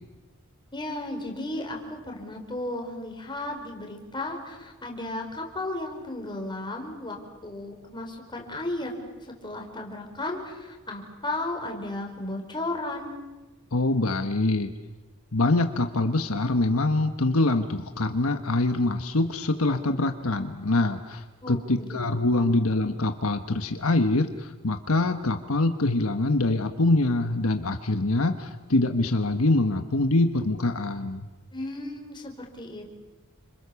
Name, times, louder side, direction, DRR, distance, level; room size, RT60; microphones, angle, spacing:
voice 1, 0.7-13.2 21.4-22.0 22.4-22.5 31.5-33.0, left 2 dB, 20° left, 2 dB, 4.7 m, -34 dB
voice 2, 13.7-14.7 15.3-31.3, left 2 dB, 70° left, 7 dB, 1.3 m, -24 dB
29.5 x 26.5 x 7.1 m, 1.2 s
head